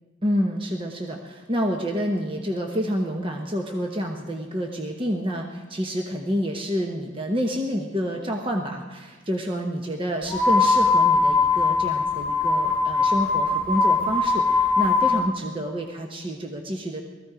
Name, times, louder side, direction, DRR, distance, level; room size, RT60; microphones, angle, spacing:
voice 1, 0.2-17.0, equal, 25° right, 2 dB, 1.0 m, -28 dB
sound 1, 10.3-15.3, left 4 dB, 10° left, 1.3 m, -21 dB
19.5 x 14.5 x 5.0 m, 1.4 s
head